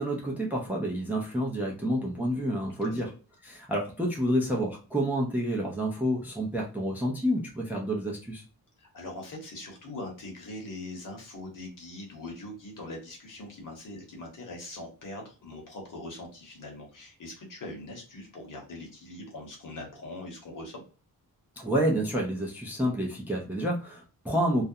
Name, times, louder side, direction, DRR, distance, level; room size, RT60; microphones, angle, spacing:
voice 1, 0.0-3.1 3.4-8.4 21.6-24.6, equal, 5° right, -1 dB, 0.4 m, -29 dB
voice 2, 8.8-20.8, left 2 dB, 55° left, 1 dB, 1.0 m, -42 dB
2.4 x 2.1 x 2.6 m, 0.35 s
wide cardioid pair, 160°, 37 cm